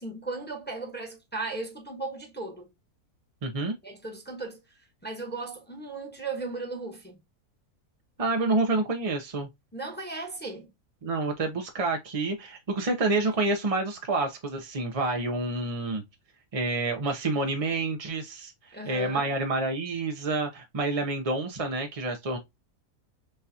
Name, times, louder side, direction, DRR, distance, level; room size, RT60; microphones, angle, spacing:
voice 1, 0.0-2.7 3.8-4.6 5.0-7.2 9.7-10.7 18.7-19.3, right 3 dB, 10° left, 1.0 m, -36 dB
voice 2, 3.4-3.7 8.2-9.5 11.0-16.0 16.5-18.5 18.9-22.4, right 2 dB, 40° right, 0.5 m, -28 dB
6.4 x 2.4 x 2.7 m
omnidirectional pair, 1.5 m